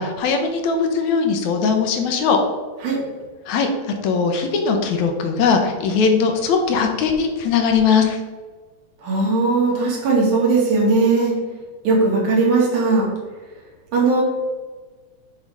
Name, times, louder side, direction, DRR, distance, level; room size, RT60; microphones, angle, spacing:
voice 1, 0.0-2.4 3.5-3.7 4.0-8.2, left 5 dB, 80° left, 4 dB, 2.2 m, -19 dB
voice 2, 9.0-11.4 11.8-13.1 13.9-14.2, right 3 dB, 80° right, -3 dB, 3.3 m, -18 dB
7.4 x 3.9 x 4.7 m, 1.4 s
omnidirectional pair, 3.4 m